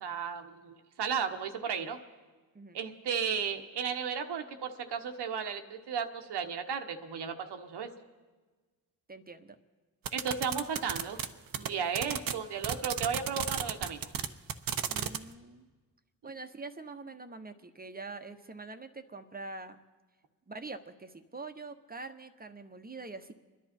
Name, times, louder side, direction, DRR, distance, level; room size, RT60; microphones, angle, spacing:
voice 1, 0.0-2.0 2.7-7.9 10.1-11.2 11.5-14.1, right 6 dB, 75° right, 6 dB, 1.2 m, -34 dB
voice 2, 9.1-9.6 14.9-15.7 16.2-19.8 20.5-23.3, right 3 dB, 20° right, 8 dB, 1.1 m, -44 dB
sound 1, 10.0-11.2 11.5-11.7 11.9-12.3 12.6-15.2, right 9 dB, 55° right, 0.9 m, -31 dB
26.5 x 10.5 x 4.4 m, 1.3 s
cardioid pair, 70°, 41 cm